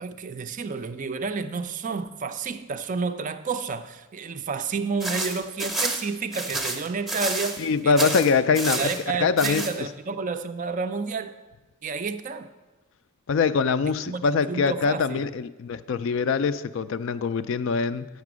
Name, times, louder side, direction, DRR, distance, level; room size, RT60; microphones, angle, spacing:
voice 1, 0.0-8.1 8.8-11.4 11.8-12.5 14.1-14.2 14.5-15.2, right 4 dB, 35° right, 0.3 m, -30 dB
sound 1, 5.0-7.7 8.0-9.0 9.4-9.7, right 2 dB, ahead, 0.7 m, -29 dB
voice 2, 7.6-8.9 9.2-9.7 13.3-18.1, left 5 dB, 55° left, 0.3 m, -23 dB
8.3 x 5.9 x 6.1 m
head